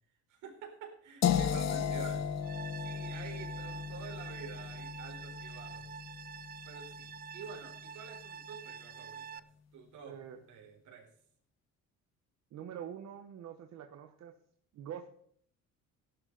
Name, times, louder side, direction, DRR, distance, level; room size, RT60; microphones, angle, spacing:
voice 1, 0.3-2.3 2.8-5.9 6.7-9.4 9.7-10.2 10.5-11.1, right 6 dB, 75° right, 2 dB, 4.1 m, -49 dB
sound 1, 1.2-7.1, left 8 dB, 60° left, 1.3 m, -35 dB
sound 2, 2.4-9.4, right 7 dB, 30° right, 0.5 m, -47 dB
voice 2, 10.0-10.4 12.5-14.3 14.7-15.1, right 9 dB, 60° right, 6 dB, 1.1 m, -45 dB
17.0 x 11.5 x 4.0 m, 0.63 s
cardioid pair, 135°, 30 cm